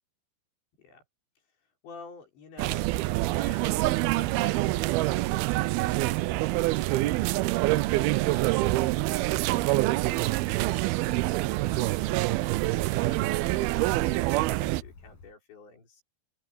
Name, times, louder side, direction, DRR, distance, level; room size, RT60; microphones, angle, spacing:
voice 1, 1.6-3.0 3.3-9.1 9.6-16.0, left 4 dB, 90° left, 8.1 m, -52 dB
sound 1, 2.6-14.8, right 19 dB, 80° right, 2.3 m, -26 dB
Bird, 7.7-15.3, left 4 dB, 55° left, 8.7 m, -51 dB
open air
omnidirectional pair, 4.9 m